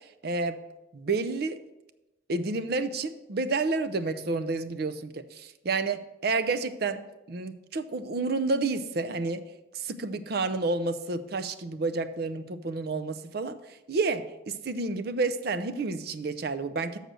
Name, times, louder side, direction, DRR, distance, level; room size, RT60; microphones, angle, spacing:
voice 1, 0.2-0.6 0.9-1.6 2.3-9.4 9.7-13.6 13.9-17.0, right 3 dB, 55° right, 11 dB, 0.5 m, -30 dB
6.6 x 6.4 x 6.2 m, 0.99 s
head